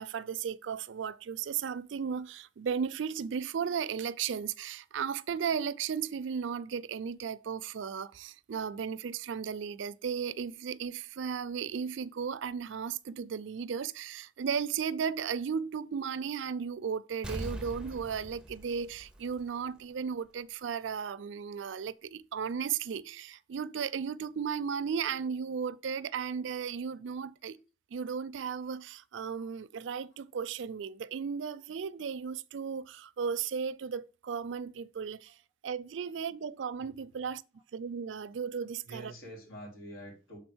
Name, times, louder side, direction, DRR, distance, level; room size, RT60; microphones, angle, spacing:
voice 1, 0.0-27.6 27.9-35.4 35.6-37.4 37.7-39.1, right 6 dB, 70° right, 0.4 m, -35 dB
Explosion, 17.2-19.8 20.2-20.3, right 1 dB, 5° right, 0.6 m, -42 dB
voice 2, 25.6-26.1 27.1-27.2 29.3-29.5 30.1-30.2 35.3-35.4 37.1-37.2 37.5-37.6 38.8-40.4, right 1 dB, 80° left, 3.5 m, -49 dB
6.1 x 4.1 x 6.1 m
head